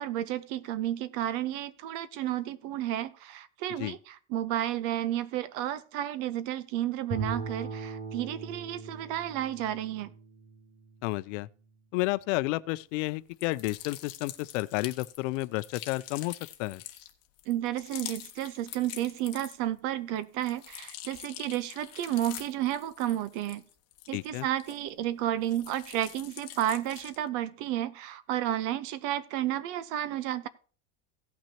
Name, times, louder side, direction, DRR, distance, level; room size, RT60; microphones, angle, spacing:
voice 1, 0.0-10.1 17.5-23.6 24.1-30.5, right 12 dB, 50° right, 0.9 m, -32 dB
Bowed string instrument, 7.1-11.3, right 4 dB, 35° right, 2.7 m, -39 dB
voice 2, 11.0-11.5 11.9-16.8 24.1-24.5, left 20 dB, 75° left, 0.6 m, -31 dB
sound 1, 13.3-19.8 20.2-25.1 25.4-27.3, left 14 dB, 40° left, 1.3 m, -45 dB
17.5 x 6.0 x 2.8 m
cardioid pair, 170°, 37 cm